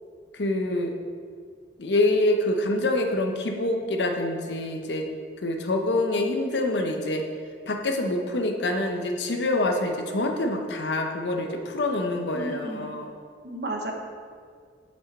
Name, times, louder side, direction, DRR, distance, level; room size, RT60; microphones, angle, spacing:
voice 1, 0.4-0.9 1.8-5.1 5.4-7.2 7.7-13.1, left 2 dB, 75° left, 4 dB, 0.8 m, -26 dB
voice 2, 12.3-13.0 13.4-13.9, right 1 dB, 65° right, 2 dB, 1.0 m, -33 dB
7.6 x 5.6 x 4.1 m, 2.1 s
head